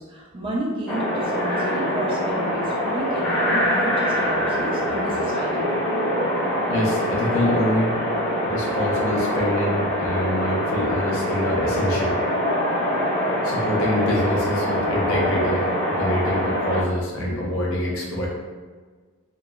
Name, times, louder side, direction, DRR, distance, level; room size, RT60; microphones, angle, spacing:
voice 1, 0.0-5.8, right 1 dB, 25° right, -4 dB, 0.4 m, -31 dB
sound 1, 0.9-16.8, equal, 30° left, 1.3 m, -24 dB
voice 2, 6.7-8.0 8.4-12.2 13.4-18.3, left 1 dB, 75° left, -3 dB, 0.6 m, -25 dB
2.8 x 2.3 x 2.2 m, 1.5 s
head